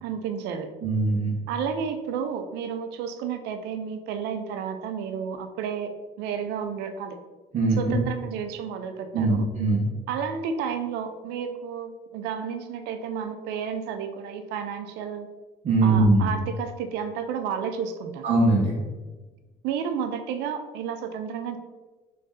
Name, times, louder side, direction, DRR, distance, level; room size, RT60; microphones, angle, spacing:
voice 1, 0.0-0.7 1.5-5.9 6.2-7.2 7.8-9.5 10.1-15.3 15.8-18.2 19.6-21.6, right 7 dB, 90° right, 8 dB, 0.4 m, -31 dB
voice 2, 0.8-1.3 7.5-7.9 9.1-9.9 15.6-16.3 18.2-18.8, right 2 dB, 50° right, -6 dB, 0.9 m, -21 dB
3.1 x 2.7 x 3.5 m, 1.2 s
cardioid pair, 110°, 17 cm